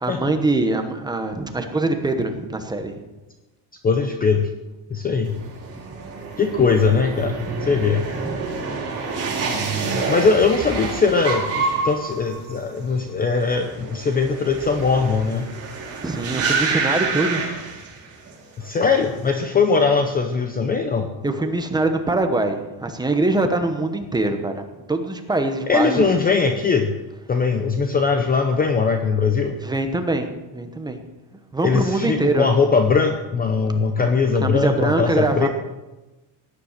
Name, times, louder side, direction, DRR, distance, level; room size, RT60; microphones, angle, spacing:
voice 1, 0.0-2.9 5.7-5.8 7.4-7.8 8.1-8.7 16.0-17.4 21.2-24.6 24.9-26.1 29.6-31.0 31.5-32.5 34.4-35.5, right 2 dB, 10° right, 5 dB, 1.0 m, -23 dB
voice 2, 3.8-4.5 4.9-5.4 6.4-8.0 9.8-15.5 18.6-21.1 25.7-26.9 27.3-29.6 31.6-35.5, left 5 dB, 20° left, 6 dB, 0.7 m, -20 dB
sound 1, 5.2-18.3 18.6-19.2, right 4 dB, 30° right, 3.9 m, -28 dB
17.0 x 10.0 x 6.7 m, 1.1 s
cardioid pair, 175°, 50 cm